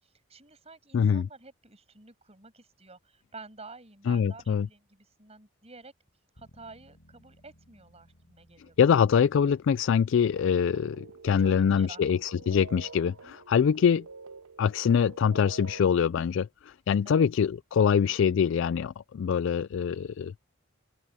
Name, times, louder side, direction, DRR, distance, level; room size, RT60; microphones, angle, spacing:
voice 1, 0.0-5.9 6.3-9.0 11.4-12.0 13.2-13.4 17.0-17.3, right 3 dB, 30° right, 6.4 m, -50 dB
voice 2, 0.9-1.2 4.1-4.7 8.8-13.2 13.5-14.0 14.6-20.3, left 7 dB, 60° left, 0.3 m, -24 dB
sound 1, 6.3-17.1, equal, 80° left, 4.8 m, -64 dB
sound 2, 10.4-15.9, right 4 dB, 85° right, 0.9 m, -48 dB
head